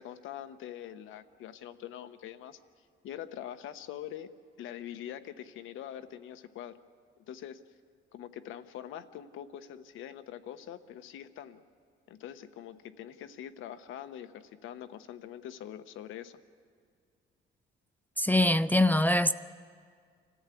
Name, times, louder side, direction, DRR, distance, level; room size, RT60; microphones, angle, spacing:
voice 1, 0.0-2.6 3.0-4.3 4.6-6.8 7.3-7.6 8.1-11.6 12.1-16.4, left 10 dB, 90° left, 1.0 m, -44 dB
voice 2, 18.2-19.3, left 1 dB, 10° left, 0.5 m, -23 dB
26.5 x 14.5 x 8.3 m
cardioid pair, 90°, 20 cm